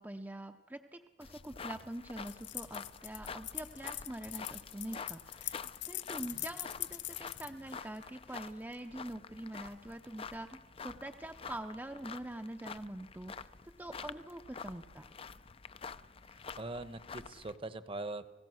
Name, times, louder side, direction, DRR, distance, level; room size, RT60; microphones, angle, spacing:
voice 1, 0.0-13.5 13.8-15.1, right 1 dB, 10° right, 5 dB, 0.7 m, -45 dB
sound 1, 1.2-17.6, left 5 dB, 35° left, 0.6 m, -48 dB
sound 2, 2.3-8.5, left 14 dB, 90° left, 0.9 m, -43 dB
voice 2, 16.3-18.3, right 2 dB, 30° right, 12 dB, 1.0 m, -42 dB
29.5 x 17.0 x 6.4 m, 1.3 s
head